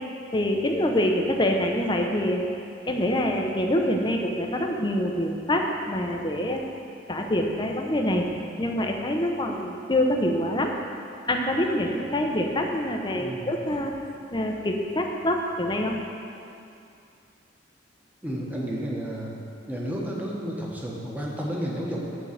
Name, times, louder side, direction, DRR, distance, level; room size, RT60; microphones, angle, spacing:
voice 1, 0.3-2.4 2.8-6.6 7.1-8.3 8.6-10.7 11.3-13.9 14.3-15.9, left 1 dB, 25° left, 2 dB, 0.7 m, -25 dB
voice 2, 13.1-13.5 18.2-19.4 19.7-22.0, equal, 10° right, -4 dB, 1.3 m, -31 dB
9.4 x 4.6 x 7.4 m, 2.6 s
head